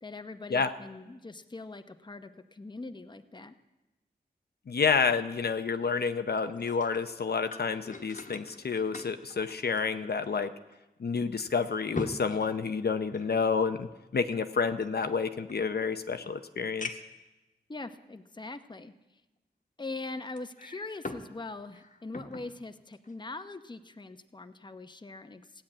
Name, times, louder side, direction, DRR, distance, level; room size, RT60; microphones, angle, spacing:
voice 1, 0.0-3.5 17.7-18.9 19.8-25.4, left 3 dB, 25° left, 9 dB, 0.8 m, -42 dB
voice 2, 4.7-10.5 11.0-13.9 14.1-16.9, left 5 dB, 70° left, 9 dB, 0.7 m, -29 dB
sound 1, 6.4-10.4 10.7-10.8 11.4-13.4 14.3-15.7 16.2-16.3 16.8-17.2 18.0-18.1 20.4-21.3 21.6-22.5 22.9-23.1, left 3 dB, 50° left, 1.3 m, -42 dB
16.0 x 10.0 x 8.8 m, 1.0 s
wide cardioid pair, 85°, 17 cm